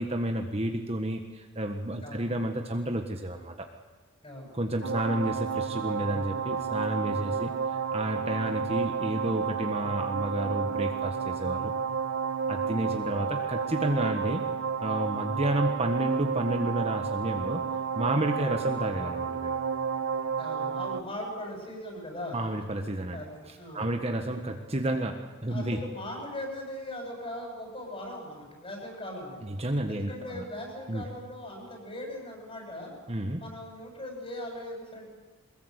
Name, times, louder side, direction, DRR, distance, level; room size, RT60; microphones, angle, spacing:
voice 1, 0.0-3.7 4.5-11.7 12.5-14.5 14.8-17.6 17.9-19.6 22.3-23.2 23.5-25.8 29.4-30.4 30.9-31.0 33.1-33.4, right 1 dB, 30° right, 4 dB, 1.5 m, -31 dB
voice 2, 4.2-4.6 18.2-18.5 20.4-22.5 23.1-23.9 25.5-29.4 29.9-32.9 33.3-35.1, left 1 dB, 25° left, 1 dB, 7.7 m, -39 dB
sound 1, 4.8-21.0, right 6 dB, 85° right, 1.1 m, -31 dB
23.0 x 21.0 x 8.2 m, 1.4 s
head